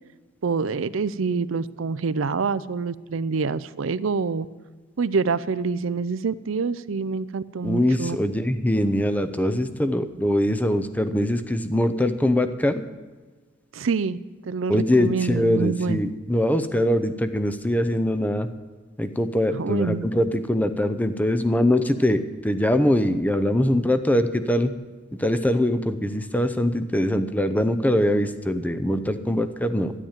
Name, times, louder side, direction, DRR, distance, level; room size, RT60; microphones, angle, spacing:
voice 1, 0.4-4.5 5.0-8.2 13.7-14.2 14.4-16.0 19.5-20.1, right 4 dB, 90° right, 16 dB, 0.5 m, -26 dB
voice 2, 7.6-12.8 14.7-18.5 19.0-24.7 25.2-29.9, left 1 dB, 10° left, 10 dB, 0.7 m, -22 dB
13.0 x 10.5 x 7.3 m, 1.3 s
head